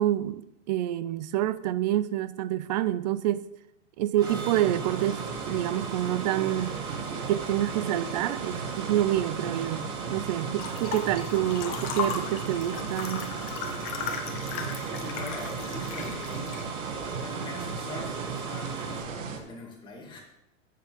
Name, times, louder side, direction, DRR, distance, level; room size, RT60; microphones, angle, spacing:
voice 1, 0.0-3.4 4.0-6.8 7.3-13.3, right 13 dB, 35° right, 0.4 m, -28 dB
sound 1, 4.2-19.0, right 3 dB, 10° right, 1.1 m, -42 dB
sound 2, 4.2-19.4, right 6 dB, 80° right, 1.6 m, -35 dB
sound 3, 10.6-16.6, left 5 dB, 35° left, 1.3 m, -36 dB
voice 2, 14.8-16.6 17.2-20.2, left 3 dB, 10° left, 2.3 m, -42 dB
7.6 x 7.0 x 6.4 m
supercardioid pair, 150°, 38 cm